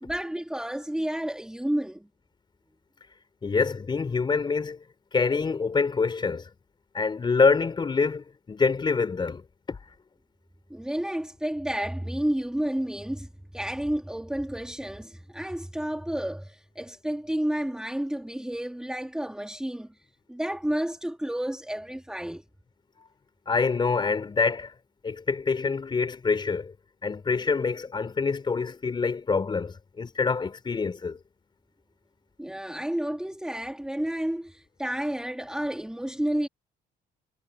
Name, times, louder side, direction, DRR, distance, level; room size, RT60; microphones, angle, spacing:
voice 1, 0.0-2.1 10.7-19.9 20.3-22.4 32.4-36.5, right 1 dB, 5° right, 2.5 m, -31 dB
voice 2, 3.4-4.8 5.1-6.5 6.9-9.4 9.7-9.8 23.5-24.7 25.0-26.7 27.0-31.2, left 4 dB, 25° left, 3.8 m, -26 dB
cardioid pair, 110°, 17 cm